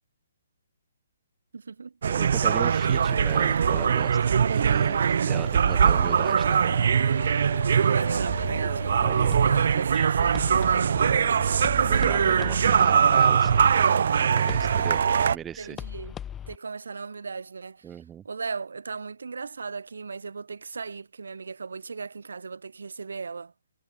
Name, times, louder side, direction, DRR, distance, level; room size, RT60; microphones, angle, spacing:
voice 1, 1.5-2.0 7.6-9.0 9.4-11.6 12.0-12.2 15.6-16.2 16.5-23.5, right 4 dB, 80° right, 3.9 m, -37 dB
sound 1, 2.0-15.4, right 7 dB, 60° right, 0.6 m, -22 dB
voice 2, 2.1-6.7 9.0-10.0 11.1-15.8 17.8-18.2, right 9 dB, 15° right, 1.3 m, -39 dB
sound 2, 2.4-10.3 10.5-10.7, left 11 dB, 45° left, 3.1 m, -43 dB
sound 3, 8.3-16.6, left 9 dB, 15° left, 6.5 m, -41 dB
hypercardioid pair, 145°, 0 cm